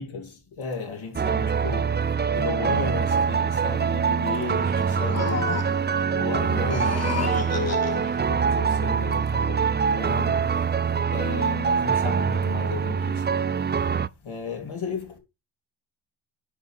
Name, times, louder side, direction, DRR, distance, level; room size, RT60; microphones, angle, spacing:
voice 1, 0.0-15.2, left 5 dB, 70° left, 3.6 m, -35 dB
sound 1, 1.1-14.1, right 6 dB, 25° right, 0.4 m, -24 dB
sound 2, 4.7-6.0 6.6-8.2, left 4 dB, 30° left, 2.1 m, -32 dB
9.9 x 5.0 x 5.0 m
cardioid pair, 70°, 49 cm